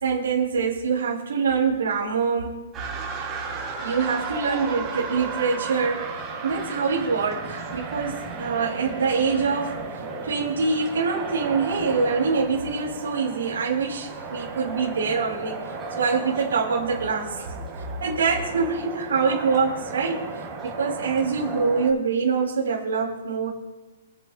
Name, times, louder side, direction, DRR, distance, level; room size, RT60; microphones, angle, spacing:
voice 1, 0.0-2.6 3.8-6.0 6.4-9.8 10.2-15.5 16.0-20.3 20.6-23.5, right 5 dB, 85° right, -4 dB, 3.5 m, -25 dB
sound 1, 2.7-21.9, right 4 dB, 15° right, 3.6 m, -34 dB
28.0 x 10.5 x 2.5 m, 1.2 s
hypercardioid pair, 160°, 0 cm